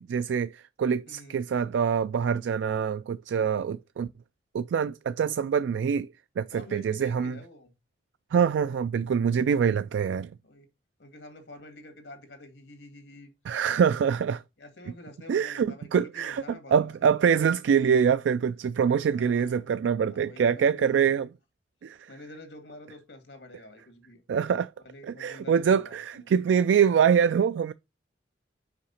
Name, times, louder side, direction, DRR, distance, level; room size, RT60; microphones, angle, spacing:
voice 1, 0.0-4.1 4.5-7.4 8.3-10.3 13.5-14.4 15.3-21.3 21.8-22.1 24.3-24.7 25.1-27.7, right 7 dB, 90° right, 0.3 m, -25 dB
voice 2, 1.1-1.4 3.4-3.8 6.5-7.7 10.4-10.7 11.0-13.3 13.6-13.8 14.6-16.9 19.1-19.7 20.0-21.0 22.1-24.2 24.8-26.3, left 2 dB, 85° left, 2.0 m, -48 dB
5.8 x 4.8 x 5.6 m
head